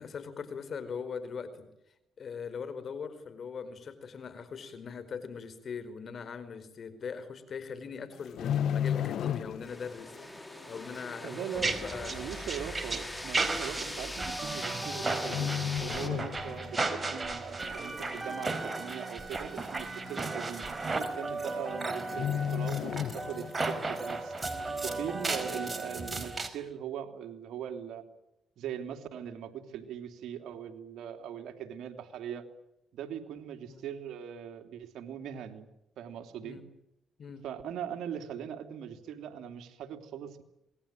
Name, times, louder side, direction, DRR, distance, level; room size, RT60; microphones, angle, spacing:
voice 1, 0.0-1.7 2.2-12.1 19.9-20.1 33.7-33.9 36.4-36.6 37.2-37.4, left 6 dB, 55° left, 13 dB, 4.9 m, -41 dB
sound 1, 8.1-9.9 10.1-10.4 11.0-11.1 12.0-12.1 12.3-12.4 13.2-13.4 14.5-14.9 15.2-16.8 17.1-17.4 17.8-18.4 18.7-18.8 19.0-19.1 19.6-19.7 20.6-20.7 21.0-21.3 21.6-21.7 22.1-23.7 24.1-24.2, left 9 dB, 75° left, 1.1 m, -33 dB
sound 2, 9.6-16.1, left 1 dB, 10° left, 3.7 m, -41 dB
voice 2, 11.2-11.7 12.1-24.3 24.8-28.0 28.6-32.4 32.9-35.7 36.0-36.6 37.4-40.4, right 9 dB, 80° right, 6 dB, 3.1 m, -40 dB
sound 3, 11.6-26.5, right 3 dB, 25° right, 4.7 m, -35 dB
27.0 x 20.5 x 9.0 m, 0.86 s
cardioid pair, 70°, 0 cm